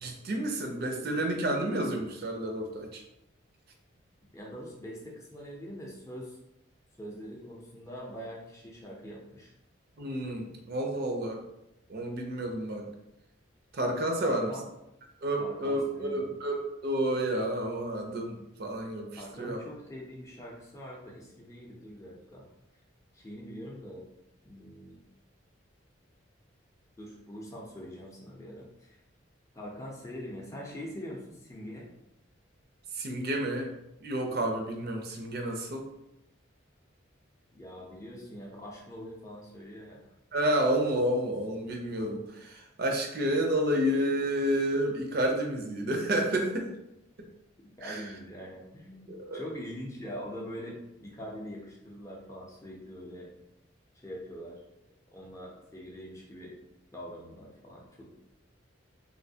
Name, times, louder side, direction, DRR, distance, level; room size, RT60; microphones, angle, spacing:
voice 1, 0.0-3.0 10.0-11.4 11.9-12.8 13.7-14.5 15.2-19.6 33.0-33.7 34.0-35.9 40.3-46.7 47.8-48.0 49.1-49.4, right 1 dB, 50° right, 2 dB, 0.4 m, -30 dB
voice 2, 4.3-6.4 7.0-9.5 14.2-14.7 15.4-16.3 19.2-22.4 23.1-24.0 24.4-25.0 27.0-29.0 29.5-31.9 37.5-40.0 47.8-53.3 53.9-54.6 55.1-56.6 56.9-58.1, equal, 15° left, -3 dB, 0.5 m, -43 dB
3.1 x 2.6 x 2.7 m, 0.88 s
head